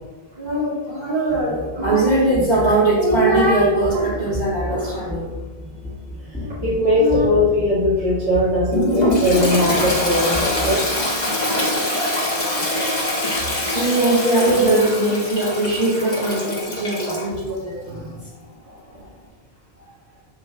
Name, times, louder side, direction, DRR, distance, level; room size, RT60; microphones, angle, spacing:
voice 1, 0.3-5.3 6.4-6.6 6.9-7.3 13.5-18.1, right 2 dB, 40° right, -6 dB, 1.5 m, -20 dB
sound 1, 1.3-10.8, left 2 dB, 5° left, 1.6 m, -33 dB
voice 2, 4.7-5.0 6.6-11.0 17.9-18.1, left 1 dB, 65° right, -10 dB, 2.0 m, -20 dB
Toilet flush, 8.7-17.3, left 1 dB, 40° left, 1.5 m, -23 dB
7.4 x 6.5 x 2.2 m, 1.3 s
omnidirectional pair, 1.2 m